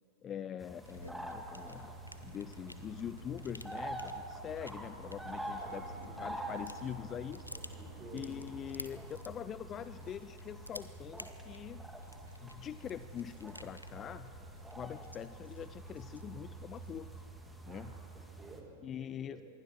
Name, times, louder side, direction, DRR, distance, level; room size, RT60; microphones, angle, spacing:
voice 1, 0.2-1.9 2.2-5.8 6.2-7.4 8.1-11.8 12.4-14.3 14.8-17.1 17.7-18.0 18.8-19.4, left 9 dB, 25° left, 14 dB, 0.4 m, -43 dB
sound 1, 0.6-18.6, right 1 dB, 5° right, 2.1 m, -47 dB
sound 2, 0.9-17.3, equal, 90° left, 0.8 m, -51 dB
sound 3, 1.4-9.1, right 3 dB, 55° right, 3.9 m, -55 dB
voice 2, 5.6-6.6 7.5-8.4 17.6-19.4, right 3 dB, 25° right, 0 dB, 4.6 m, -53 dB
25.5 x 22.5 x 4.4 m, 2.7 s
figure-of-eight pair, 90°, 0 cm